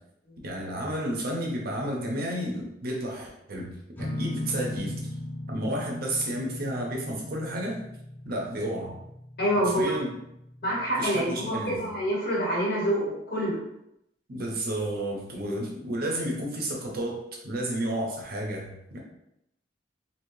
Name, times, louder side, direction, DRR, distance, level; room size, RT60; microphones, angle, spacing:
voice 1, 0.4-3.7 4.0-5.0 5.5-7.8 8.3-9.0 9.6-10.2 11.0-11.8 14.3-19.0, right 1 dB, 55° right, -1 dB, 0.7 m, -31 dB
sound 1, 4.0-11.5, left 1 dB, 10° left, 0.6 m, -39 dB
voice 2, 9.4-10.0 10.6-13.6, equal, 55° left, -5 dB, 1.3 m, -26 dB
3.1 x 2.8 x 2.7 m, 0.80 s
head